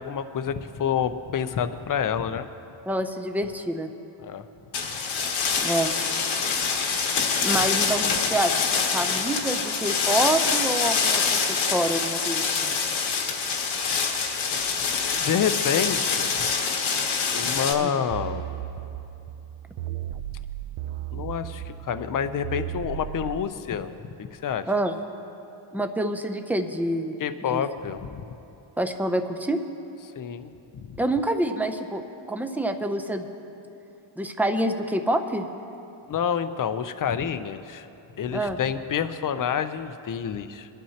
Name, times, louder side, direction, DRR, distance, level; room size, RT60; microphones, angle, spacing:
voice 1, 0.0-2.5 4.2-4.4 15.2-16.5 17.3-18.5 21.1-24.7 27.2-28.2 30.2-30.5 30.8-31.0 36.1-37.9 38.2-40.7, left 8 dB, 45° left, 11 dB, 0.5 m, -28 dB
voice 2, 2.9-3.9 5.6-5.9 7.4-8.6 8.9-12.7 17.8-18.0 24.7-25.0 25.7-27.2 27.5-27.6 28.8-29.6 31.0-32.0 32.3-33.3 34.2-35.5 38.3-38.6, right 1 dB, 5° right, 6 dB, 0.5 m, -27 dB
sound 1, 4.7-17.7, left 5 dB, 75° left, 1.3 m, -25 dB
sound 2, 18.1-23.4, right 12 dB, 85° right, 0.6 m, -35 dB
22.5 x 12.5 x 2.8 m, 2.8 s
wide cardioid pair, 160°, 47 cm